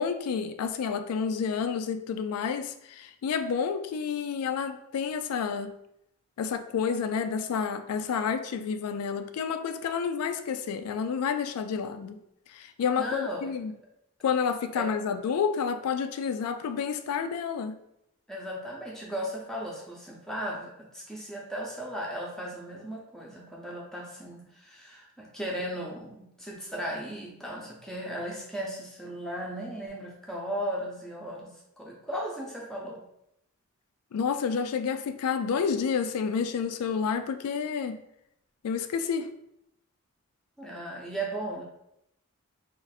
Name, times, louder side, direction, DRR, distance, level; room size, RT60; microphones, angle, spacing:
voice 1, 0.0-5.7 6.4-12.2 12.5-13.7 14.2-17.8 34.1-38.0 38.6-39.3, left 6 dB, 80° left, 8 dB, 0.3 m, -29 dB
voice 2, 13.0-13.7 14.8-14.9 18.3-31.5 31.8-33.0 40.6-41.6, right 1 dB, ahead, -3 dB, 0.6 m, -36 dB
2.5 x 2.5 x 4.0 m, 0.80 s
head